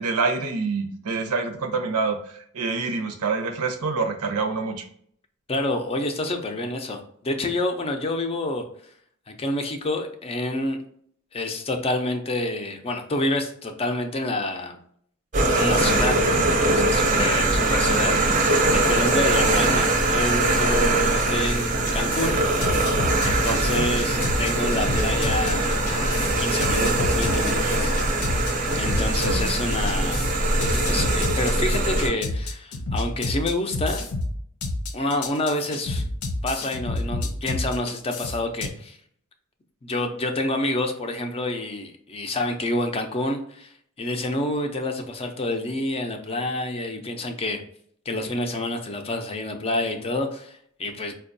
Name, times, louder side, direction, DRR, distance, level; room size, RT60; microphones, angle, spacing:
voice 1, 0.0-4.8 17.1-17.3 23.5-23.9 27.6-27.8 29.1-29.5, right 4 dB, 85° right, 4 dB, 0.6 m, -27 dB
voice 2, 5.5-8.6 9.3-10.8 11.3-14.8 15.5-16.2 16.8-22.4 23.2-27.9 28.7-34.1 34.9-36.0 36.4-39.0 39.8-47.6 48.1-51.1, left 2 dB, 25° left, 5 dB, 0.4 m, -28 dB
sound 1, 15.3-32.1, right 2 dB, 35° right, 0.5 m, -22 dB
sound 2, 21.9-38.7, left 2 dB, 85° left, 0.6 m, -29 dB
4.3 x 2.3 x 2.5 m, 0.63 s
head